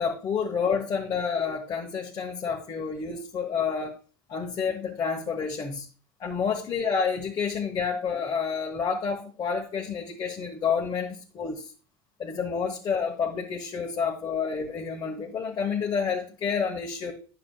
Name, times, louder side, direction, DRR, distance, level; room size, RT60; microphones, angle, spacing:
voice 1, 0.0-4.0 4.3-5.9 6.2-11.7 12.2-17.1, left 6 dB, 40° left, -1 dB, 1.2 m, -29 dB
9.6 x 6.9 x 2.3 m, 0.37 s
supercardioid pair, 85°, 12 cm